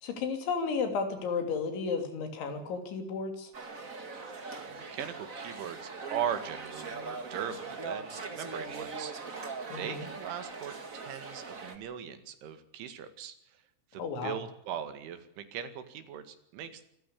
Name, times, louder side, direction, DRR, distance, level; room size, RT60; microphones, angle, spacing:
voice 1, 0.0-3.5 9.7-10.1 14.0-14.4, left 5 dB, 70° left, 6 dB, 5.4 m, -33 dB
sound 1, 3.5-11.8, right 4 dB, 55° right, 0.9 m, -41 dB
voice 2, 4.7-9.4 9.7-13.4 13.9-16.8, right 9 dB, 80° right, 10 dB, 4.4 m, -39 dB
26.0 x 14.5 x 8.5 m, 0.78 s
omnidirectional pair, 5.5 m